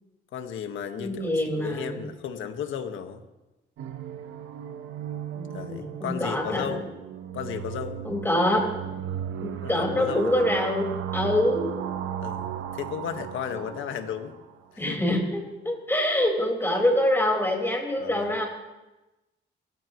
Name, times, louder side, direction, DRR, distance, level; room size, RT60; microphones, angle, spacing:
voice 1, 0.3-3.2 5.5-6.9 7.3-8.0 9.6-10.4 12.2-14.3 14.7-15.0 18.0-18.3, left 8 dB, 80° left, 6 dB, 1.7 m, -34 dB
voice 2, 1.0-2.0 5.3-6.7 8.0-8.6 9.4-10.9 11.1-11.6 13.5-13.6 14.8-18.5, left 1 dB, 10° left, 0 dB, 5.0 m, -25 dB
sound 1, 3.8-14.6, right 9 dB, 80° right, 1.2 m, -36 dB
28.0 x 14.5 x 3.2 m, 1.0 s
cardioid pair, 90°, 20 cm